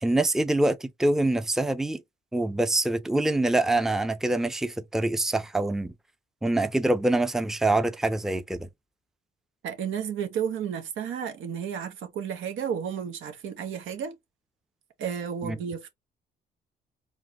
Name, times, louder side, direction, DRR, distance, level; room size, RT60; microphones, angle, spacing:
voice 1, 0.0-2.0 2.3-5.9 6.4-8.7 15.4-15.6, right 2 dB, ahead, 0.5 m, -25 dB
voice 2, 9.6-14.2 15.0-15.9, right 8 dB, 80° right, 1.3 m, -32 dB
4.8 x 3.0 x 2.9 m
cardioid pair, 90°, 20 cm